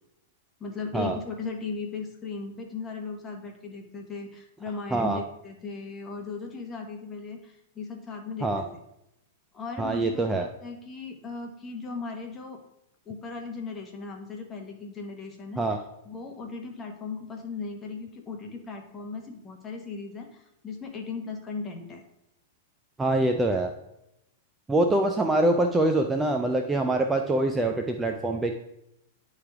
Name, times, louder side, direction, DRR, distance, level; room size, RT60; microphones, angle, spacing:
voice 1, 0.6-8.7 9.5-12.6 13.1-15.7 16.0-22.0, left 4 dB, 20° left, 2 dB, 1.2 m, -37 dB
voice 2, 9.8-10.5 15.6-15.8 23.0-23.7 24.7-28.5, right 2 dB, 10° right, 4 dB, 0.4 m, -24 dB
9.8 x 3.4 x 3.5 m, 0.84 s
hypercardioid pair, 135°, 0 cm